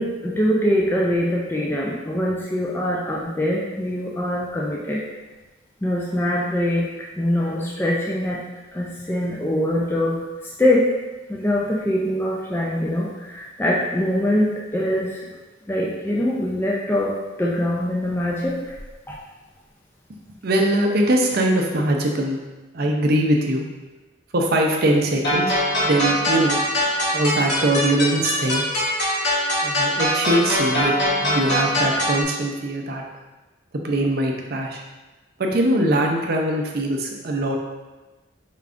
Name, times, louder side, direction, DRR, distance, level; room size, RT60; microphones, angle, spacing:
voice 1, 0.0-5.0 5.8-6.9 7.2-8.4 8.7-10.2 10.6-10.9 11.3-15.2 15.7-18.6 19.1-19.2, left 1 dB, 10° left, -4 dB, 0.3 m, -23 dB
voice 2, 20.4-22.4 22.7-23.7 24.3-25.6 25.8-26.6 27.1-28.6 29.6-30.9 31.2-33.0 33.8-34.8 35.4-37.6, right 1 dB, 50° right, 1 dB, 0.5 m, -21 dB
sound 1, 25.2-32.2, equal, 55° left, 1.1 m, -22 dB
4.6 x 3.4 x 2.5 m, 1.2 s
head